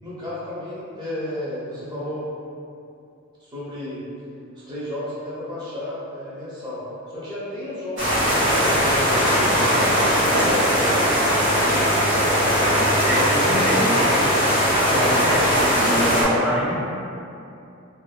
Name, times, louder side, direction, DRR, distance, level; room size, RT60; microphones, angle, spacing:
voice 1, 0.0-2.3 3.4-4.0 4.7-11.8, left 1 dB, 20° right, -10 dB, 0.9 m, -33 dB
sound 1, 8.0-16.2, equal, 60° right, 0.9 m, -19 dB
voice 2, 13.0-14.3 14.9-16.8, equal, 5° right, -7 dB, 0.4 m, -25 dB
2.7 x 2.5 x 2.3 m, 2.6 s
head